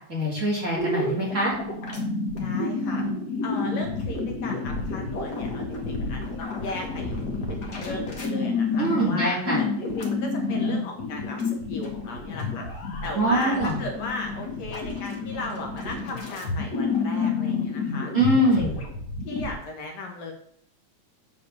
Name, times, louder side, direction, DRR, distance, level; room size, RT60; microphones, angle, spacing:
voice 1, 0.1-1.5 8.8-9.6 13.1-13.8 18.1-18.8, right 1 dB, 25° right, -4 dB, 2.9 m, -23 dB
sound 1, 0.8-19.5, left 3 dB, 40° left, 2.0 m, -29 dB
voice 2, 2.4-3.0 3.4-7.1 7.5-12.6 13.0-18.1 18.6-18.9 19.3-20.3, left 2 dB, 65° left, 2 dB, 2.5 m, -36 dB
8.4 x 4.8 x 6.6 m, 0.65 s
omnidirectional pair, 3.4 m